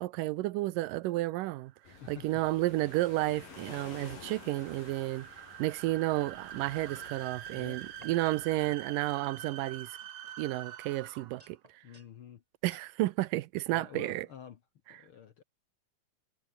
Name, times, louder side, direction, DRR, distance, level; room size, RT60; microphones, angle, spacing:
voice 1, 0.0-1.7 2.1-5.3 5.6-9.9 10.4-11.6 12.6-14.3, right 17 dB, 90° right, 2.4 m, -31 dB
sound 1, 1.1-11.5, right 11 dB, 60° right, 2.1 m, -47 dB
sound 2, 1.8-8.8, left 5 dB, 85° left, 6.5 m, -52 dB
voice 2, 2.0-2.4 7.5-8.2 11.8-12.4 13.7-14.6 14.9-15.4, left 8 dB, 60° left, 1.5 m, -49 dB
sound 3, 6.9-8.2 8.6-8.8 9.5-9.7 10.0-11.0 11.4-12.1 12.7-12.9 13.6-13.7, right 2 dB, 15° right, 2.2 m, -60 dB
omnidirectional pair, 3.8 m